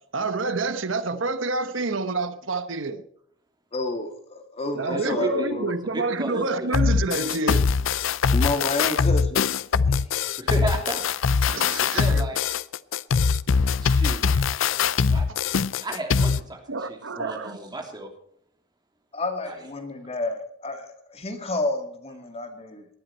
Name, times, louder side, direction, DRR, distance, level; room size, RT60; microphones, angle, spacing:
voice 1, 0.1-3.0 4.8-7.7 11.4-12.2 16.7-17.6, right 3 dB, 90° right, 11 dB, 1.1 m, -28 dB
voice 2, 3.7-5.7 8.3-9.5 9.8-10.1 19.1-22.9, left 2 dB, 35° left, 5 dB, 2.1 m, -30 dB
voice 3, 4.8-5.5 5.9-6.9 8.8-9.1 10.4-11.0 11.8-12.4 13.8-14.5 15.0-15.3 15.8-16.6 16.9-18.1 19.5-19.6, right 1 dB, 20° right, 2 dB, 3.1 m, -33 dB
sound 1, 6.7-16.4, left 5 dB, 90° left, 0.5 m, -22 dB
19.0 x 12.0 x 4.4 m, 0.68 s
head